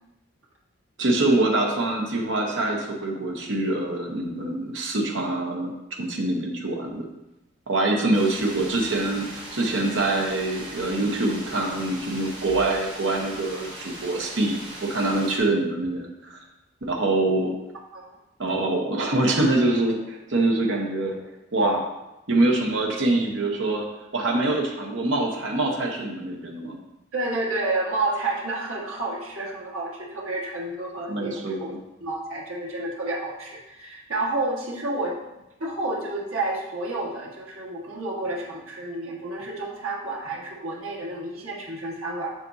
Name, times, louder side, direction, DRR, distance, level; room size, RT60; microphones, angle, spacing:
voice 1, 1.0-5.7 6.0-7.1 7.7-16.4 16.8-17.5 18.4-21.2 21.5-21.8 22.3-23.9 24.1-26.8 31.1-31.8, right 2 dB, 65° right, 0 dB, 0.9 m, -24 dB
sound 1, 8.1-15.4, right 1 dB, 20° right, 1.1 m, -39 dB
voice 2, 27.1-31.3 31.6-31.7 32.0-35.2 35.6-42.3, right 2 dB, 90° right, -3 dB, 1.5 m, -30 dB
7.3 x 5.9 x 2.7 m, 0.95 s
head